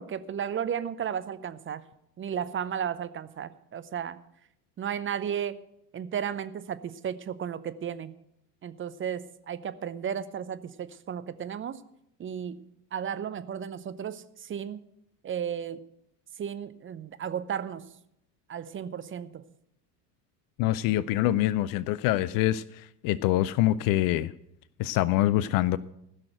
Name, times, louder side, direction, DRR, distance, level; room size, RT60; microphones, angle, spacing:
voice 1, 0.0-1.8 2.2-4.2 4.8-5.6 5.9-8.1 8.6-11.8 12.2-14.8 15.2-15.8 16.4-17.9 18.5-19.4, right 8 dB, 25° right, 0.7 m, -34 dB
voice 2, 20.6-24.3 24.8-25.8, left 14 dB, 45° left, 0.5 m, -25 dB
15.5 x 6.4 x 7.7 m
figure-of-eight pair, 70°, 49 cm